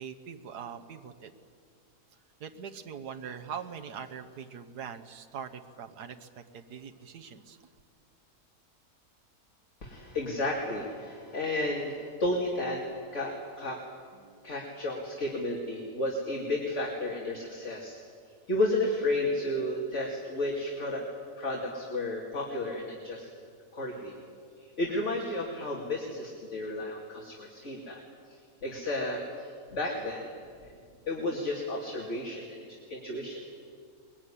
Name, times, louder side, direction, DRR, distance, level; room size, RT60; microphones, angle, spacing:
voice 1, 0.0-1.3 2.4-7.7 14.1-14.5, right 7 dB, 85° right, 5 dB, 1.7 m, -42 dB
voice 2, 9.8-13.8 14.4-18.0 18.5-21.0 21.4-23.3 23.7-24.1 24.6-28.0 28.6-30.3 31.1-33.4, left 1 dB, 45° left, -2 dB, 2.9 m, -32 dB
23.0 x 21.5 x 10.0 m, 2.2 s
omnidirectional pair, 1.7 m